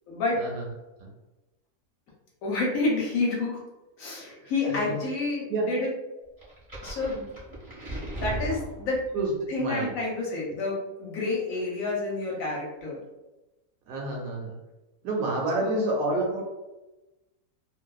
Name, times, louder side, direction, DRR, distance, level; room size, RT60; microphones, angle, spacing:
voice 1, 0.1-0.4 2.4-3.6 4.0-5.9 6.8-7.3 7.8-9.0 9.5-13.0 15.6-15.8, left 3 dB, 65° left, -3 dB, 0.9 m, -29 dB
sound 1, 6.4-9.3, right 1 dB, 30° right, 0.7 m, -36 dB
voice 2, 9.6-9.9 13.9-14.6 15.0-16.4, right 2 dB, 70° right, -1 dB, 1.0 m, -28 dB
2.6 x 2.2 x 2.3 m, 1.0 s
omnidirectional pair, 1.7 m